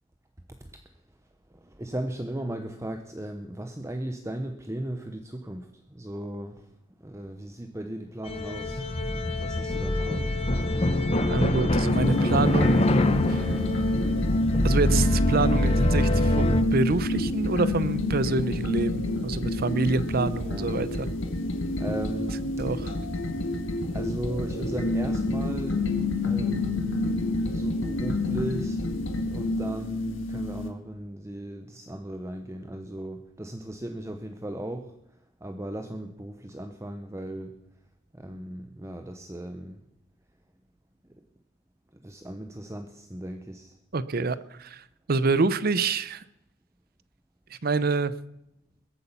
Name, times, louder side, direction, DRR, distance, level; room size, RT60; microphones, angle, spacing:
voice 1, 1.6-6.7 7.0-8.9 9.4-10.3 10.7-10.8 20.4-20.9 21.8-22.4 23.9-25.9 26.2-28.8 29.3-34.9 35.4-37.6 38.1-39.8 41.9-43.7, right 1 dB, 15° right, 6 dB, 0.8 m, -36 dB
sound 1, 8.3-16.6, left 1 dB, 30° left, 0.9 m, -25 dB
voice 2, 11.3-12.9 13.3-13.5 14.6-21.1 22.6-23.0 43.9-46.2 47.6-48.1, right 3 dB, 50° right, 16 dB, 0.6 m, -27 dB
sound 2, 11.9-30.7, left 2 dB, 70° left, 1.7 m, -28 dB
21.0 x 8.4 x 5.7 m, 0.82 s
head